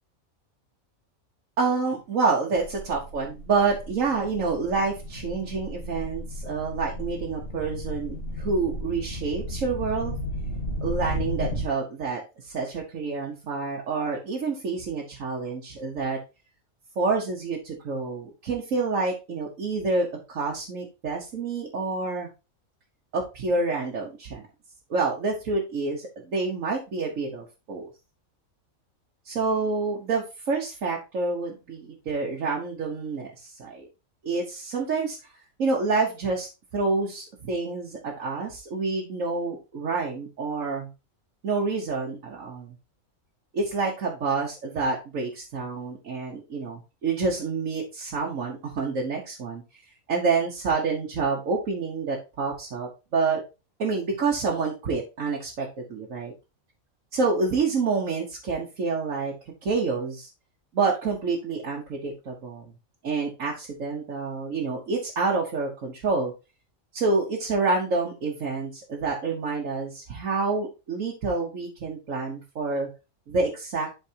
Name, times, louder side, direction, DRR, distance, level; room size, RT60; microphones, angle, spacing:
voice 1, 1.6-10.2 10.8-16.2 17.0-22.3 23.1-24.4 24.9-27.9 29.2-33.9 34.2-35.2 35.6-40.9 41.4-42.7 43.5-49.6 50.1-53.4 53.8-56.3 57.1-59.3 59.6-60.3 60.7-62.6 63.0-66.3 66.9-72.9 73.3-73.9, right 4 dB, 70° right, -2 dB, 1.5 m, -28 dB
sound 1, 2.5-11.6, equal, 45° left, 1.7 m, -34 dB
11.5 x 4.0 x 2.8 m, 0.29 s
omnidirectional pair, 1.4 m